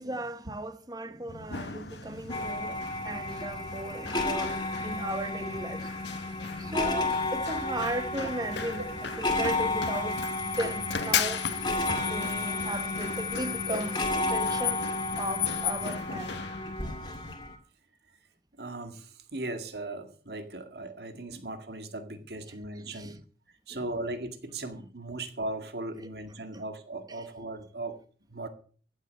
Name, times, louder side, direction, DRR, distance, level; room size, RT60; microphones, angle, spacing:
voice 1, 0.0-5.9 6.6-8.8 9.2-10.2 10.6-11.5 12.1-13.9 14.3-14.8 15.2-16.4 22.9-23.2 23.7-23.8 26.0-26.1 26.5-26.6, right 1 dB, 20° right, 1.0 m, -36 dB
Run, 1.3-17.3, left 5 dB, 80° left, 1.1 m, -38 dB
sound 1, 2.3-17.6, left 2 dB, 25° left, 2.2 m, -32 dB
sound 2, 10.1-16.0, left 15 dB, 40° left, 0.6 m, -36 dB
voice 2, 18.6-23.2 23.7-28.0 28.3-28.5, right 2 dB, 65° right, 2.0 m, -38 dB
14.5 x 8.0 x 6.4 m
head